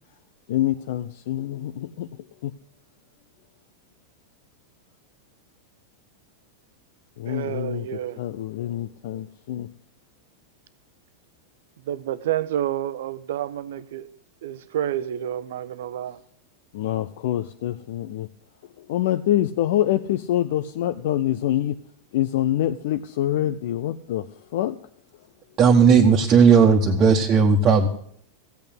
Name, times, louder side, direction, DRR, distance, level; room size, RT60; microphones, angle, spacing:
voice 1, 0.5-2.1 2.4-2.5 7.2-7.8 8.2-9.7 16.7-18.3 18.8-21.8 22.1-24.3 24.5-24.8, left 12 dB, 55° left, 0.6 m, -25 dB
voice 2, 7.2-8.3 11.8-14.1 14.4-16.2, right 11 dB, 55° right, 0.8 m, -29 dB
voice 3, 25.6-27.9, right 6 dB, 30° right, 1.4 m, -15 dB
15.5 x 8.7 x 8.0 m
figure-of-eight pair, 90°, 0 cm